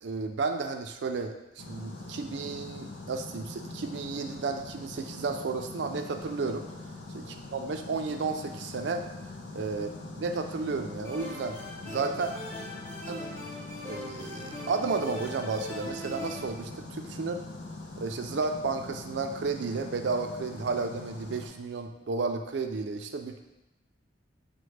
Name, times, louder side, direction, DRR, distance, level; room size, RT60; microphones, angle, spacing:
voice 1, 0.0-6.6 7.1-7.2 7.5-9.0 9.6-9.9 10.2-12.3 13.1-13.2 13.9-17.4 18.0-23.4, right 4 dB, 65° right, 6 dB, 0.4 m, -32 dB
sound 1, 1.6-21.5, left 2 dB, 70° left, 0.6 m, -43 dB
sound 2, 11.0-16.5, left 1 dB, 15° left, 0.6 m, -41 dB
5.9 x 2.1 x 3.2 m, 0.97 s
head